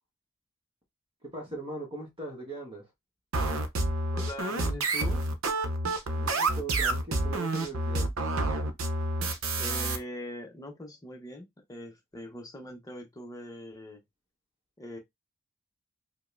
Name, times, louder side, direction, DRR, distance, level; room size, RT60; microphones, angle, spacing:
voice 1, 1.2-2.9 6.1-8.1, right 2 dB, 25° right, 1.2 m, -40 dB
sound 1, 3.3-10.0, right 2 dB, 65° right, 0.7 m, -28 dB
voice 2, 4.1-5.3 9.6-14.0 14.8-15.0, left 1 dB, 15° left, 0.8 m, -41 dB
5.1 x 2.1 x 2.5 m
head